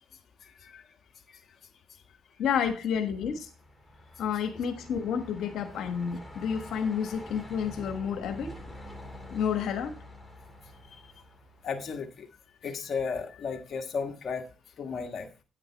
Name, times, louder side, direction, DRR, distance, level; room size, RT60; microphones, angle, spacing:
voice 1, 2.4-3.5 4.2-8.5 9.3-9.9, left 7 dB, 80° left, 5 dB, 1.3 m, -30 dB
Truck, 2.8-12.1, equal, 5° left, 2.5 m, -47 dB
voice 2, 11.6-12.3 12.6-14.5 14.8-15.3, left 5 dB, 55° left, 3 dB, 1.4 m, -34 dB
9.3 x 9.1 x 3.4 m, 0.31 s
cardioid pair, 90°, 0 cm